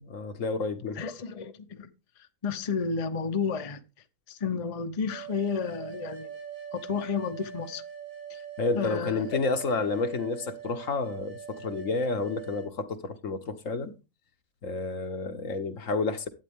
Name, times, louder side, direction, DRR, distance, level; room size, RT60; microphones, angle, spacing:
voice 1, 0.0-1.0 8.6-13.9 14.6-16.3, left 3 dB, 65° left, 1.5 m, -30 dB
voice 2, 0.9-1.9 2.4-3.8 4.3-6.3 6.7-7.8 8.3-8.4 8.7-9.4, left 5 dB, 30° left, 0.8 m, -31 dB
sound 1, 5.1-12.7, right 8 dB, 70° right, 5.8 m, -42 dB
12.0 x 9.0 x 3.6 m
omnidirectional pair, 1.5 m